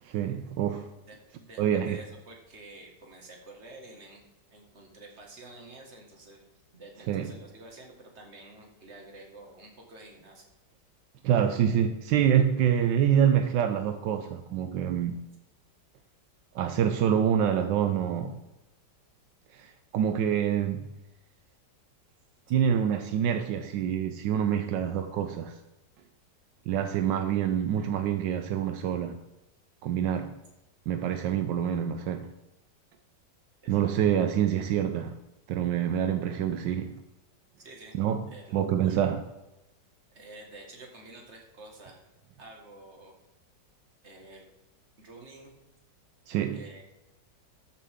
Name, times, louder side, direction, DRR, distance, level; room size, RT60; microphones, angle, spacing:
voice 1, 0.0-0.9 1.6-2.0 7.1-7.3 11.2-15.2 16.5-18.4 19.5-20.9 22.5-25.6 26.7-29.2 29.8-30.4 30.9-32.3 33.7-35.2 35.5-37.0 37.9-38.2 38.5-39.2 46.3-46.6, right 9 dB, 80° right, 8 dB, 1.3 m, -26 dB
voice 2, 1.1-4.2 4.5-6.4 6.7-10.4 33.6-34.0 37.6-37.9 38.3-39.1 40.1-42.0 42.4-43.1 44.0-44.5 45.0-45.5 46.5-46.8, right 2 dB, 35° right, 1 dB, 2.2 m, -49 dB
13.5 x 6.6 x 3.7 m, 0.98 s
omnidirectional pair, 2.0 m